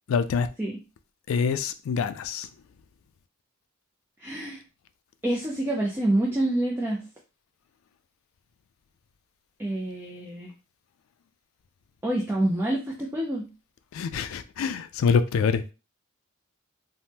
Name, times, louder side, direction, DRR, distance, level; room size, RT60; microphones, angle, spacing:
voice 1, 0.1-0.5 1.3-2.5 13.9-15.6, left 5 dB, 75° left, 0.3 m, -25 dB
voice 2, 4.2-4.6 5.2-7.0 9.6-10.5 12.0-13.5, right 1 dB, 10° right, 0.4 m, -27 dB
3.4 x 2.1 x 2.8 m
head